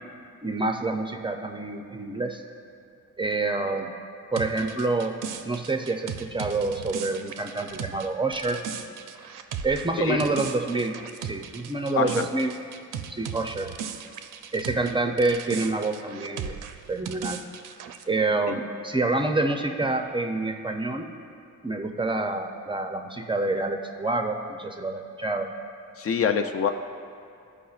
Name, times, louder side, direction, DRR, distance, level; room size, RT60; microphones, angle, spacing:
voice 1, 0.4-2.4 3.2-3.9 4.3-5.1 5.4-8.6 9.6-12.5 13.1-13.7 14.5-16.6 16.9-17.4 18.1-21.1 21.6-25.5, right 2 dB, 15° right, 4 dB, 0.4 m, -27 dB
sound 1, 4.4-14.9 15.2-18.0, right 7 dB, 80° right, 0.5 m, -37 dB
voice 2, 12.0-12.3 26.0-26.7, left 6 dB, 50° left, 6 dB, 0.4 m, -25 dB
13.0 x 4.9 x 2.4 m, 2.5 s
cardioid pair, 110°, 31 cm